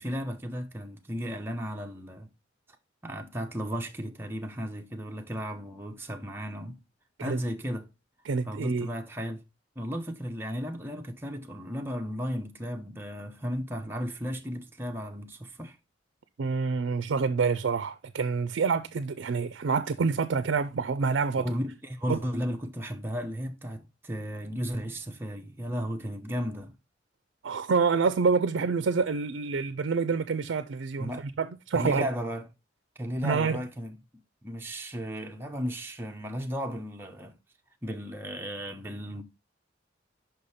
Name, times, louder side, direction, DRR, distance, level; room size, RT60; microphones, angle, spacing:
voice 1, 0.0-2.3 3.0-6.8 7.2-7.9 8.5-9.4 9.8-15.8 21.4-26.7 31.0-31.4 31.7-32.5 33.0-34.0 34.4-37.4 37.8-39.2, equal, 10° right, 0.7 m, -34 dB
voice 2, 8.3-8.9 16.4-21.5 22.1-22.2 27.4-32.1 33.2-33.6, right 5 dB, 70° right, 0.4 m, -27 dB
5.6 x 5.2 x 4.1 m
head